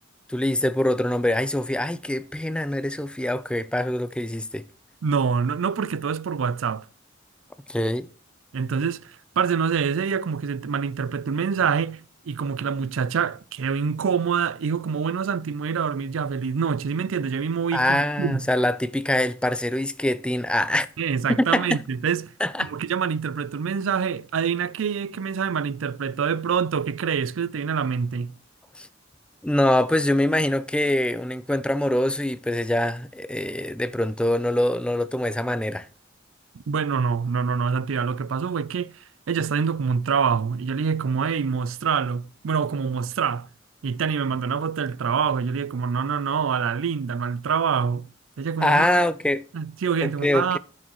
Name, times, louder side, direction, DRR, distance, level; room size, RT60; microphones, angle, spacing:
voice 1, 0.3-4.6 7.7-8.1 17.7-20.9 21.4-21.8 22.4-22.7 28.8-28.9 29.4-35.9 48.6-49.4 50.0-50.6, left 1 dB, 5° left, 0.4 m, -24 dB
voice 2, 5.0-6.9 8.5-18.4 21.0-22.3 22.6-28.3 36.7-39.0 39.3-43.5 43.8-48.1 48.4-48.9 49.5-50.6, right 6 dB, 85° right, 0.4 m, -26 dB
12.5 x 6.4 x 3.1 m
head